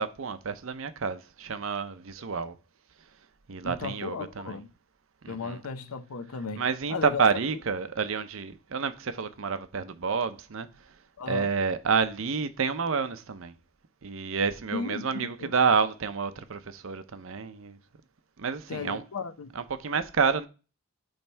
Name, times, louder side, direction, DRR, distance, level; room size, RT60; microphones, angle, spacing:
voice 1, 0.0-2.5 3.5-4.6 5.2-5.6 6.6-10.7 11.3-13.5 14.0-17.8 18.4-19.0 19.6-20.5, right 5 dB, 65° right, 0.6 m, -29 dB
voice 2, 3.6-4.7 5.3-7.2 11.2-11.5 14.7-15.5 18.7-19.5, left 4 dB, 80° left, 0.7 m, -35 dB
8.8 x 3.2 x 4.5 m
head